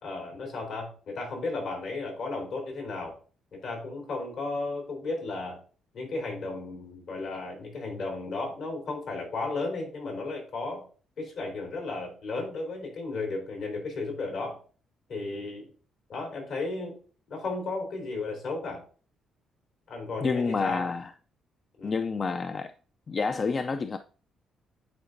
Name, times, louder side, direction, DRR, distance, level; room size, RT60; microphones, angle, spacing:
voice 1, 0.0-3.2 3.5-5.6 5.9-10.8 11.2-14.6 15.1-15.7 16.1-16.9 17.3-18.8 19.9-20.8 21.8-21.9, left 3 dB, 75° left, 3.4 m, -34 dB
voice 2, 20.2-21.1 21.8-22.7 23.1-24.0, left 4 dB, 40° left, 0.3 m, -28 dB
9.7 x 4.1 x 2.5 m
cardioid pair, 90°, 0 cm